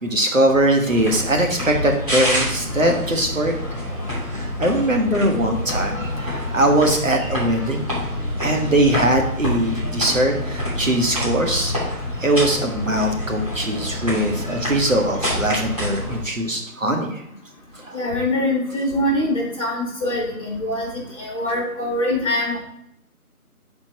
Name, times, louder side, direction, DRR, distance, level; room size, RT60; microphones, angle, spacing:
voice 1, 0.0-3.5 4.4-7.9 8.4-17.2 17.7-18.0, right 1 dB, 60° right, 2 dB, 1.4 m, -21 dB
sound 1, 0.8-16.2, left 1 dB, 25° right, 2.8 m, -27 dB
voice 2, 17.9-20.9 21.2-22.6, left 1 dB, 25° left, -2 dB, 2.1 m, -23 dB
11.0 x 4.4 x 2.9 m, 0.72 s
figure-of-eight pair, 170°, 45 cm